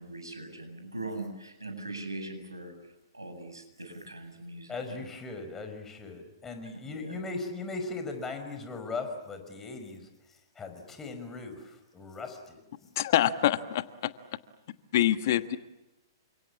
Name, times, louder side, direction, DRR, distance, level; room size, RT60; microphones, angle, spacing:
voice 1, 0.0-4.8 6.9-7.2, right 2 dB, 90° right, 6 dB, 7.8 m, -41 dB
voice 2, 4.7-10.1 10.6-12.6, left 3 dB, 15° left, 6 dB, 5.6 m, -38 dB
voice 3, 13.0-14.1 14.9-15.6, left 12 dB, 50° left, 12 dB, 1.4 m, -25 dB
30.0 x 26.5 x 7.2 m, 0.95 s
figure-of-eight pair, 115°, 2 cm